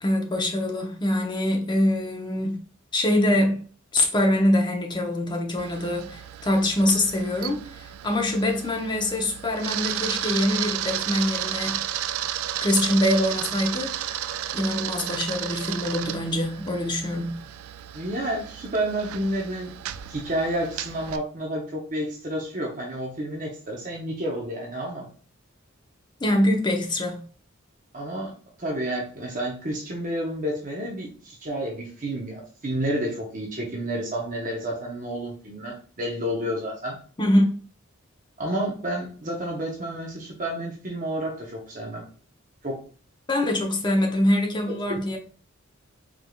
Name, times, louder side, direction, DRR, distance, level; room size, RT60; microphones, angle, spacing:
voice 1, 0.0-2.6 2.9-3.6 3.9-11.8 12.6-14.1 14.5-17.4 26.2-27.2 37.2-37.5 43.3-45.2, left 1 dB, 20° left, 0.9 m, -24 dB
Camera, 5.6-21.2, right 11 dB, 80° right, 0.3 m, -33 dB
voice 2, 17.9-19.7 20.1-25.1 27.9-28.3 28.6-37.0 38.4-42.0 42.6-42.8 44.9-45.0, right 1 dB, 40° right, 0.9 m, -30 dB
4.9 x 3.5 x 2.4 m
head